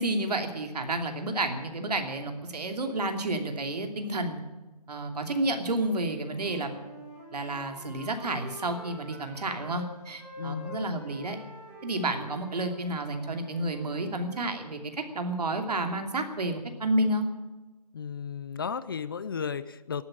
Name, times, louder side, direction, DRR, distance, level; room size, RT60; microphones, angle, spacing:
voice 1, 0.0-4.4 4.9-6.7 7.3-11.4 11.8-17.3, right 2 dB, 70° right, 5 dB, 2.8 m, -30 dB
Wind instrument woodwind instrument, 6.2-9.8 10.2-14.4, equal, 5° right, 5.5 m, -47 dB
voice 2, 10.4-10.8 17.9-20.0, left 6 dB, 35° left, 16 dB, 0.5 m, -34 dB
13.5 x 12.0 x 8.9 m, 1.1 s
hypercardioid pair, 160°, 21 cm